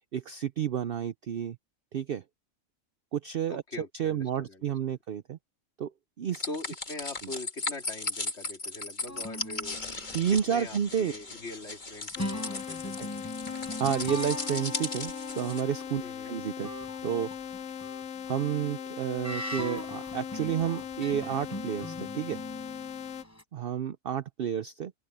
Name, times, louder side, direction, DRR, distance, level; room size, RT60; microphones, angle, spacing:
voice 1, 0.1-1.6 1.9-2.2 3.1-3.6 4.0-5.4 5.8-5.9 6.2-6.4 10.1-11.1 13.0-13.1 13.8-16.7 17.0-17.3 18.3-22.4 23.5-24.9, right 9 dB, 55° right, 0.7 m, -30 dB
voice 2, 3.5-5.0 6.5-9.8 10.3-13.1 16.0-16.4, left 2 dB, 50° left, 3.5 m, -42 dB
sound 1, 6.3-15.6, left 3 dB, 35° left, 2.1 m, -37 dB
sound 2, 9.1-11.5 12.1-16.0 16.6-23.4, equal, 10° left, 5.6 m, -41 dB
sound 3, 12.2-23.2, left 8 dB, 90° left, 1.2 m, -39 dB
open air
omnidirectional pair, 1.4 m